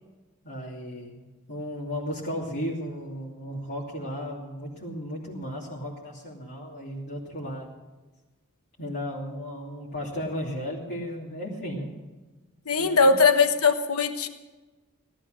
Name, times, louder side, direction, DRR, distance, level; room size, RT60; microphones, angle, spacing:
voice 1, 0.4-1.2 1.5-7.7 8.8-11.9 12.8-13.1, equal, 50° left, -6 dB, 2.7 m, -35 dB
voice 2, 12.7-14.3, left 4 dB, 75° left, 8 dB, 1.2 m, -20 dB
18.0 x 12.5 x 6.4 m, 1.2 s
head